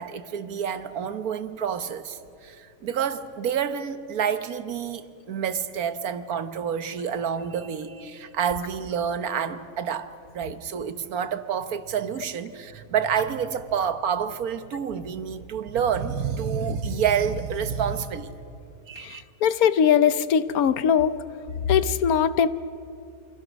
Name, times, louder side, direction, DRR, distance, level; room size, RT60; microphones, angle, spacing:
voice 1, 0.0-18.3 18.9-19.2, right 7 dB, 85° right, 1.5 m, -28 dB
voice 2, 19.0-21.1 21.7-22.5, left 8 dB, 85° left, 1.3 m, -21 dB
29.5 x 25.0 x 6.3 m
omnidirectional pair, 1.5 m